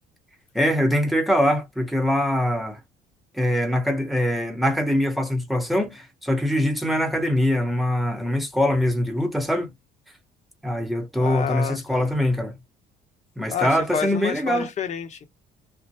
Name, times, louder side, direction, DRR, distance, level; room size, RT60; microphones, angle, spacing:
voice 1, 0.5-2.8 3.3-9.7 10.6-12.5 13.4-14.7, left 1 dB, ahead, 0.8 m, -23 dB
voice 2, 11.2-12.1 13.5-15.3, left 7 dB, 45° left, 0.7 m, -29 dB
2.5 x 2.1 x 2.7 m
cardioid pair, 110°, 17 cm